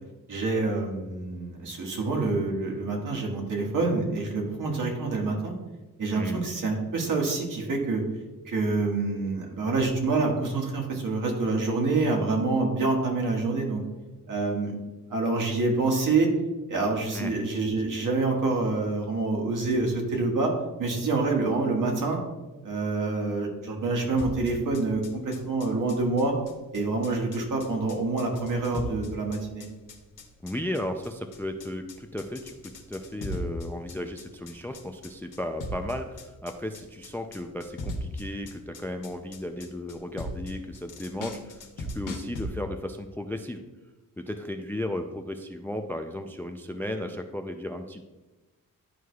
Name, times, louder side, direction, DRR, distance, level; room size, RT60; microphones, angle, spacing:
voice 1, 0.3-5.5 6.0-8.0 8.4-13.8 14.3-14.7 15.1-16.3 16.7-20.5 20.8-22.2 22.6-26.3 26.7-29.7, right 3 dB, 65° right, 0 dB, 1.6 m, -27 dB
sound 1, 24.2-42.5, left 1 dB, 65° left, 1.2 m, -39 dB
voice 2, 30.4-43.6 44.2-48.0, left 1 dB, 5° left, 6 dB, 0.3 m, -35 dB
11.0 x 4.7 x 2.3 m, 1.1 s
wide cardioid pair, 115°, 34 cm